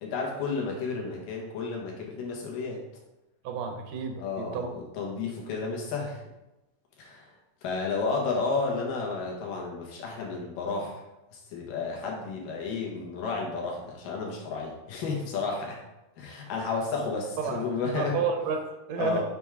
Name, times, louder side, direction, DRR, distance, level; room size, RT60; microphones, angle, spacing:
voice 1, 0.0-2.8 4.2-6.2 7.0-7.3 7.6-11.0 11.3-15.8 16.2-18.3 19.0-19.2, left 4 dB, 85° left, -1 dB, 3.0 m, -32 dB
voice 2, 3.4-4.7 17.4-17.6 17.9-19.2, right 6 dB, 75° right, 4 dB, 2.1 m, -31 dB
7.0 x 4.7 x 3.6 m, 0.97 s
omnidirectional pair, 3.9 m